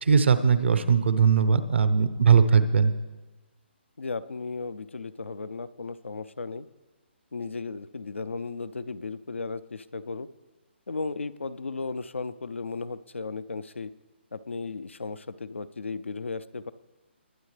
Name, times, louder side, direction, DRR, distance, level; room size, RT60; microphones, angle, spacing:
voice 1, 0.0-2.9, right 6 dB, 70° right, 12 dB, 0.9 m, -20 dB
voice 2, 4.0-6.7 7.3-10.3 10.9-13.9 14.3-16.7, left 4 dB, 90° left, 14 dB, 0.5 m, -35 dB
21.0 x 8.4 x 3.3 m, 1.2 s
figure-of-eight pair, 145°, 6 cm